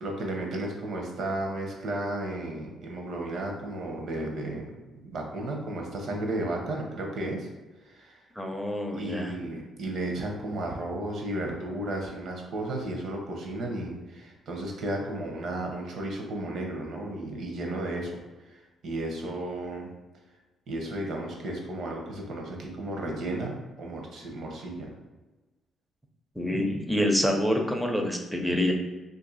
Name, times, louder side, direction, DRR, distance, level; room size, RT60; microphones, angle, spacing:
voice 1, 0.0-4.7 5.1-7.5 7.9-8.2 8.9-18.1 18.5-19.9 20.7-24.9, right 1 dB, 65° right, 1 dB, 0.8 m, -33 dB
voice 2, 8.4-9.3 26.4-28.7, left 1 dB, ahead, 2 dB, 0.5 m, -27 dB
2.6 x 2.6 x 3.9 m, 1.2 s
cardioid pair, 90°, 0 cm